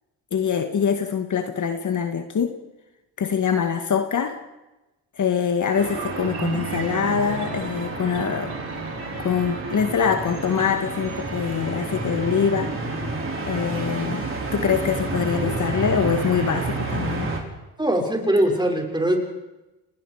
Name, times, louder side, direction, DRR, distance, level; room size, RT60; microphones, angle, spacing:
voice 1, 0.3-2.6 3.2-4.4 5.2-8.6 9.2-13.1 13.5-14.3 14.5-17.3, left 7 dB, 45° left, 7 dB, 1.9 m, -24 dB
sound 1, 5.7-12.8, right 7 dB, 70° right, 4.3 m, -37 dB
sound 2, 5.8-17.4, right 3 dB, 30° right, 6.3 m, -30 dB
voice 2, 17.8-19.2, right 1 dB, 10° right, 2 dB, 6.3 m, -21 dB
29.5 x 19.5 x 5.0 m, 1.0 s
supercardioid pair, 75°, 41 cm